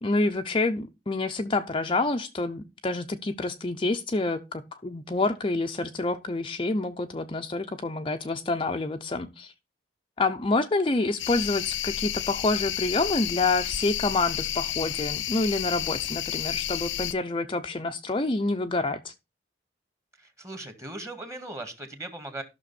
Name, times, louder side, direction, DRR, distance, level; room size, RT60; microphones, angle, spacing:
voice 1, 0.0-9.5 10.2-19.1, left 2 dB, 30° left, 0.7 m, -27 dB
sound 1, 11.2-17.1, left 12 dB, 90° left, 0.6 m, -31 dB
voice 2, 20.2-22.4, right 2 dB, 15° right, 1.9 m, -38 dB
13.0 x 6.3 x 4.2 m
head